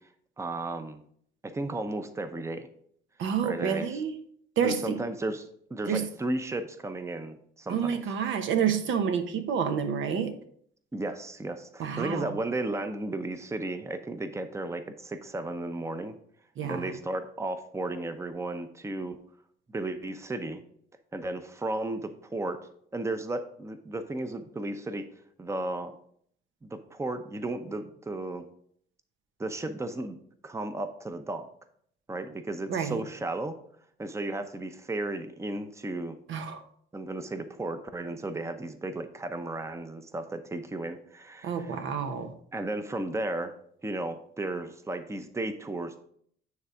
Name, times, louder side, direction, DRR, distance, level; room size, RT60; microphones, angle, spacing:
voice 1, 0.4-1.0 1.4-2.7 3.4-4.0 4.6-8.0 10.9-16.2 16.6-19.2 19.7-20.6 21.1-22.6 22.9-25.1 25.4-25.9 26.6-28.4 29.4-30.2 30.4-31.5 32.1-33.6 34.0-36.1 36.9-41.8 42.5-43.5 43.8-46.0, right 2 dB, 15° right, 8 dB, 0.7 m, -34 dB
voice 2, 3.2-4.1 4.6-5.0 5.9-6.1 7.7-10.3 11.8-12.4 16.6-16.9 32.7-33.0 36.3-36.6 41.4-42.3, right 7 dB, 75° right, 7 dB, 0.9 m, -29 dB
9.5 x 3.4 x 4.9 m, 0.63 s
cardioid pair, 90°, 20 cm